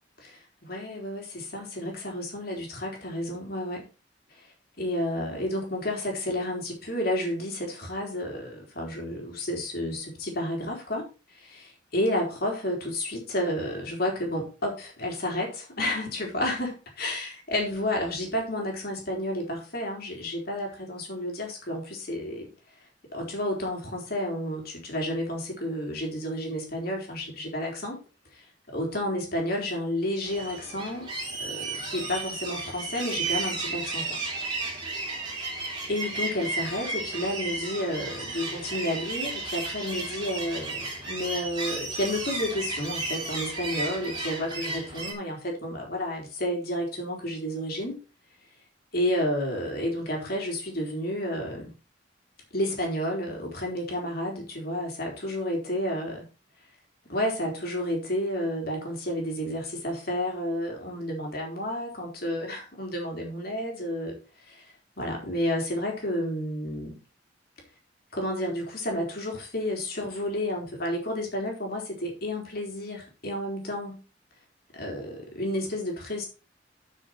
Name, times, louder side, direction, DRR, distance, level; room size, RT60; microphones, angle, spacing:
voice 1, 0.2-3.9 4.4-4.5 4.8-11.1 11.3-22.5 23.1-28.0 28.3-28.4 28.7-31.1 31.4-34.2 35.9-48.0 48.9-51.7 52.5-56.3 57.1-64.2 64.5-64.6 65.0-67.0 68.1-74.0 74.7-76.3, left 1 dB, 55° left, 0 dB, 3.9 m, -31 dB
sound 1, 30.2-45.1, right 3 dB, 25° right, 3.7 m, -33 dB
9.9 x 6.2 x 4.5 m, 0.32 s
head